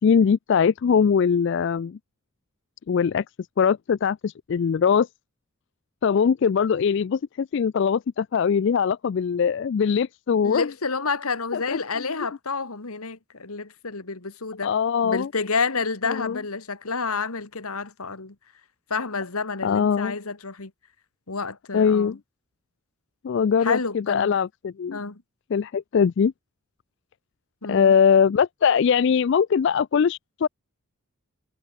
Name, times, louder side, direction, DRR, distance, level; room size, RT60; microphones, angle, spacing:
voice 1, 0.0-2.0 2.9-3.2 3.6-5.1 6.0-10.7 11.5-12.1 14.6-15.3 16.1-16.4 19.6-20.2 21.7-22.2 23.2-25.0 25.5-26.3 27.7-30.5, left 6 dB, 55° left, 0.3 m, -21 dB
voice 2, 10.4-14.7 15.0-18.4 18.9-20.7 21.3-22.2 23.6-24.4 24.9-25.2 27.6-27.9, left 4 dB, 75° left, 1.9 m, -29 dB
head